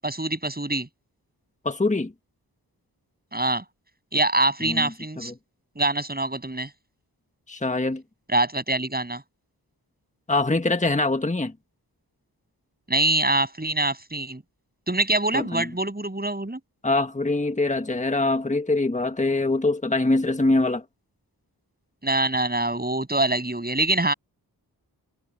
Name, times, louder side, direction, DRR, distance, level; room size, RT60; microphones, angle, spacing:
voice 1, 0.0-0.9 3.3-3.6 4.1-5.3 5.8-6.7 8.3-9.2 12.9-14.4 14.9-16.6 22.0-24.1, right 2 dB, 25° right, 7.7 m, -24 dB
voice 2, 1.6-2.1 4.6-5.3 7.5-8.0 10.3-11.5 15.3-15.7 16.8-20.8, left 2 dB, 20° left, 1.6 m, -24 dB
cardioid pair, 45°, 40 cm